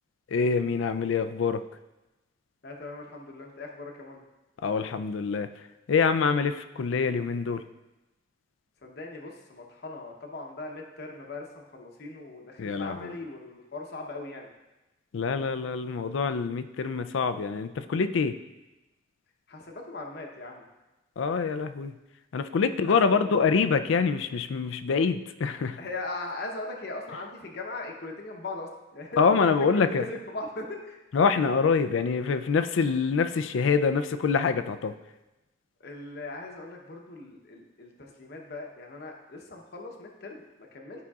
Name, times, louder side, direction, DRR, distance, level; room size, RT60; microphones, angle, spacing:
voice 1, 0.3-1.6 4.6-5.5 5.9-7.6 12.6-13.2 15.1-18.3 21.2-21.9 22.3-25.8 29.2-30.0 31.1-34.9, left 5 dB, 80° left, 11 dB, 0.4 m, -25 dB
voice 2, 2.6-4.2 8.8-14.5 19.5-20.6 22.9-23.3 25.8-31.0 35.8-41.0, left 2 dB, 55° left, 1 dB, 0.8 m, -39 dB
12.5 x 5.1 x 2.4 m, 1.0 s
head